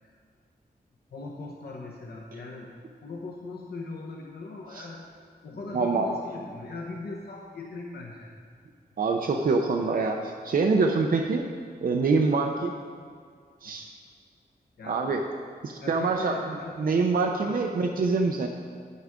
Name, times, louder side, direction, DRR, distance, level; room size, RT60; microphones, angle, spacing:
voice 1, 1.1-2.7 3.0-5.0 5.4-8.3 13.6-13.9 14.8-15.2 15.8-16.9 17.4-17.6, left 3 dB, 80° left, -2 dB, 1.1 m, -39 dB
voice 2, 5.7-6.1 9.0-11.4 11.8-12.7 13.6-13.9 14.8-15.2 15.6-16.4 16.8-18.5, right 4 dB, 65° right, 3 dB, 0.6 m, -25 dB
10.5 x 9.3 x 3.7 m, 2.1 s
wide cardioid pair, 155°, 16 cm